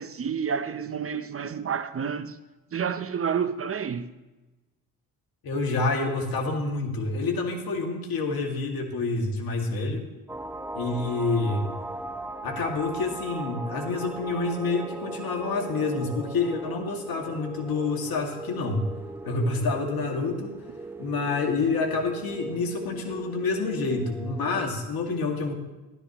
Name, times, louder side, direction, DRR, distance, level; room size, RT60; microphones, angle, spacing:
voice 1, 0.0-2.4 2.7-4.1, right 7 dB, 35° right, 0.7 m, -29 dB
voice 2, 5.4-10.1 10.7-11.7 12.4-18.8 19.2-20.5 21.0-25.5, left 3 dB, 70° left, 2.1 m, -28 dB
sound 1, 10.3-24.6, right 2 dB, 5° right, 0.8 m, -38 dB
13.0 x 12.5 x 3.0 m
supercardioid pair, 60°, 38 cm